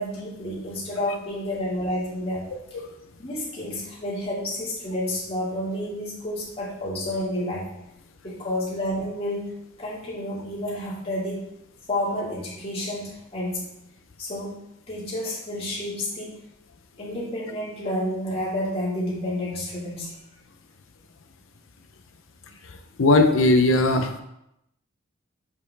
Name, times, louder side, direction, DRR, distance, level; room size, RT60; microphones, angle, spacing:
voice 1, 0.0-2.5 3.2-7.7 8.2-11.4 11.9-13.6 14.2-16.4 17.0-20.2, left 1 dB, 30° left, -7 dB, 2.1 m, -30 dB
voice 2, 23.0-24.2, left 2 dB, 75° left, 6 dB, 0.6 m, -18 dB
6.8 x 5.4 x 3.4 m, 0.82 s
head